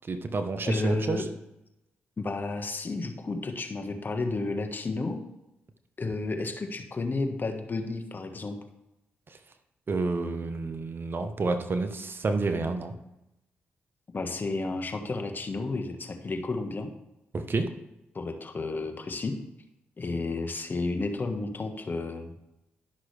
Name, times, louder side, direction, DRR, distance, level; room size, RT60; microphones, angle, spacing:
voice 1, 0.1-1.2 9.9-12.9 17.3-17.7, right 3 dB, 45° right, 8 dB, 0.9 m, -29 dB
voice 2, 0.6-1.3 2.2-5.2 6.0-8.6 14.1-16.9 18.1-19.4 20.0-22.3, left 3 dB, 40° left, 6 dB, 1.4 m, -32 dB
12.0 x 6.0 x 3.3 m, 0.91 s
supercardioid pair, 45°, 5 cm